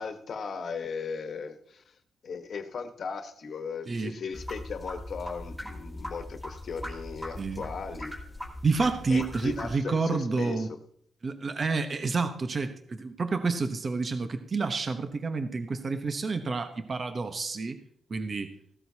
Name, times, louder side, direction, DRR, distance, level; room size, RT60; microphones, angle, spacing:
voice 1, 0.0-1.9 2.2-8.1 9.1-10.7, left 5 dB, 60° left, 8 dB, 1.3 m, -37 dB
sound 1, 4.3-9.7, left 1 dB, ahead, 2.4 m, -40 dB
voice 2, 8.6-10.7 11.2-17.8 18.1-18.5, right 4 dB, 40° right, 8 dB, 1.0 m, -29 dB
15.5 x 12.5 x 2.9 m, 0.65 s
cardioid pair, 100°, 0 cm